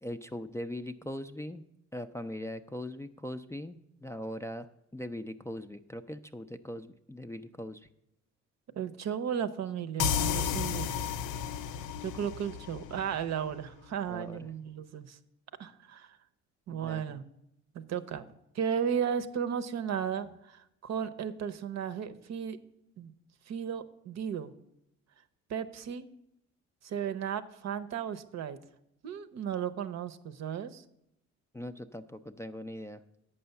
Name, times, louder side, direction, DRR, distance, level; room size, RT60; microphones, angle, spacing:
voice 1, 0.0-1.6 1.9-4.7 4.9-7.9 14.1-14.5 16.7-17.2 31.5-33.0, left 1 dB, 10° left, 5 dB, 0.3 m, -40 dB
voice 2, 8.8-11.1 12.0-15.2 15.6-16.1 16.7-17.2 17.7-18.3 18.5-22.6 23.0-23.1 23.5-24.5 25.5-26.1 26.8-28.6 29.0-30.8, right 8 dB, 60° right, 10 dB, 0.7 m, -35 dB
sound 1, 10.0-13.5, left 8 dB, 90° left, 0.5 m, -33 dB
8.6 x 5.5 x 6.8 m, 0.81 s
cardioid pair, 90°, 30 cm